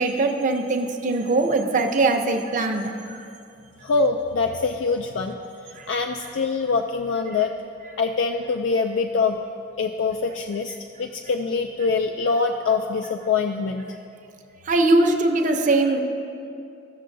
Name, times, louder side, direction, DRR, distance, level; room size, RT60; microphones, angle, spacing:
voice 1, 0.0-2.9 14.7-16.0, right 2 dB, 40° right, 4 dB, 0.7 m, -21 dB
voice 2, 3.8-5.4 5.9-7.5 8.0-9.4 9.8-14.0, left 4 dB, 75° left, 4 dB, 0.4 m, -24 dB
15.5 x 6.5 x 2.6 m, 2.6 s
head